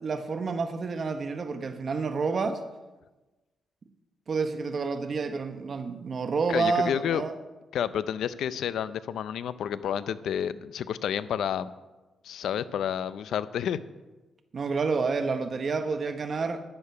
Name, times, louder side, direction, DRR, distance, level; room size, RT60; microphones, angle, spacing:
voice 1, 0.0-2.6 4.3-7.4 14.5-16.6, right 4 dB, 50° right, 9 dB, 0.9 m, -29 dB
voice 2, 6.5-7.2 7.7-11.7 12.2-13.8, left 9 dB, 80° left, 15 dB, 0.5 m, -30 dB
11.5 x 10.5 x 5.7 m, 1.1 s
cardioid pair, 90°, 0 cm